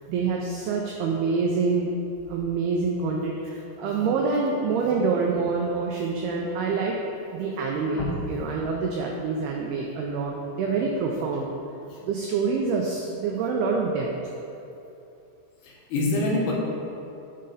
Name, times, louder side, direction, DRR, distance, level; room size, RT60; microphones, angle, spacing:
voice 1, 0.1-1.9 2.3-7.0 7.3-11.5 12.0-14.1, right 4 dB, 90° right, 0 dB, 2.2 m, -26 dB
voice 2, 15.6-16.5, left 2 dB, 70° left, -4 dB, 2.7 m, -26 dB
9.6 x 5.3 x 3.9 m, 2.8 s
omnidirectional pair, 5.3 m